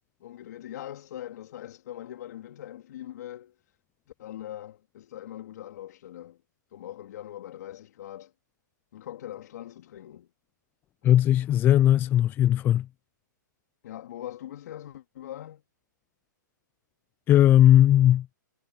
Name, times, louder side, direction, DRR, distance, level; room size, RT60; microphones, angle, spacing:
voice 1, 0.2-3.6 4.2-6.4 6.7-8.3 8.9-10.3 13.8-15.6, left 12 dB, 55° left, 3.7 m, -41 dB
voice 2, 11.0-12.9 17.3-18.3, left 12 dB, 20° left, 0.5 m, -18 dB
hypercardioid pair, 140°, 11 cm